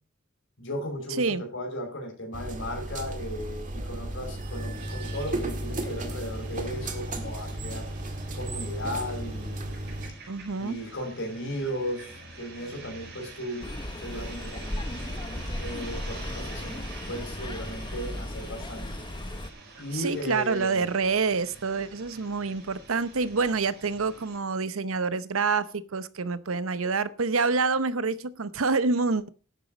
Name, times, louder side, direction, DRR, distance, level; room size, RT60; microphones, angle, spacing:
voice 1, 0.6-7.9 8.3-9.8 10.6-13.7 14.0-14.8 15.6-18.9 19.8-20.9, equal, 65° left, 2 dB, 5.3 m, -36 dB
sound 1, 2.3-10.1, right 1 dB, 40° right, 1.8 m, -34 dB
sound 2, 4.7-24.4, right 3 dB, 60° right, 5.9 m, -46 dB
voice 2, 10.3-10.8 19.9-29.3, right 4 dB, 80° right, 15 dB, 0.8 m, -27 dB
sound 3, 13.6-19.5, left 1 dB, 25° left, 0.9 m, -36 dB
11.0 x 9.1 x 5.2 m, 0.37 s
head